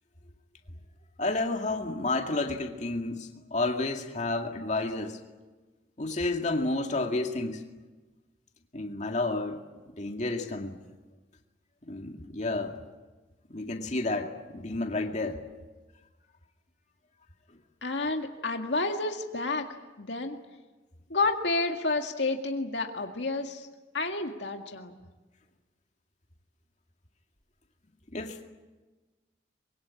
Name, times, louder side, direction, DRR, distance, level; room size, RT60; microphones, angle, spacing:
voice 1, 1.2-5.2 6.0-7.6 8.7-9.6 10.0-10.8 11.9-12.8 13.5-15.4 28.1-28.4, left 2 dB, 40° left, 3 dB, 2.2 m, -31 dB
voice 2, 17.8-19.7 20.0-20.4 21.1-23.7 23.9-24.9, left 3 dB, 70° left, 4 dB, 2.0 m, -30 dB
24.5 x 23.0 x 8.5 m, 1.2 s
head